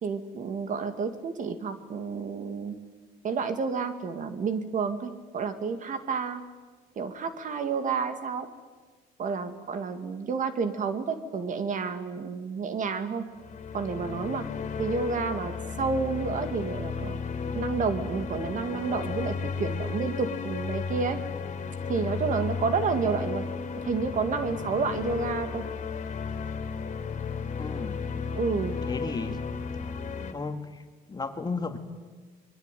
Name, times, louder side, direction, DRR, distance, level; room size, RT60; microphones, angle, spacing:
voice 1, 0.0-2.7 3.2-6.4 7.0-8.5 9.2-13.2 13.7-14.5 14.8-15.5 15.8-17.2 17.5-21.2 21.9-23.4 23.9-25.6 28.3-28.7, right 5 dB, 50° right, 9 dB, 2.3 m, -30 dB
sound 1, 13.3-30.3, left 5 dB, 45° left, 3.7 m, -34 dB
voice 2, 27.6-28.0 28.9-29.4 29.9-30.0 30.3-30.6 31.1-31.8, left 4 dB, 25° left, 7 dB, 2.4 m, -33 dB
25.5 x 22.0 x 9.3 m, 1.4 s
cardioid pair, 110°, 17 cm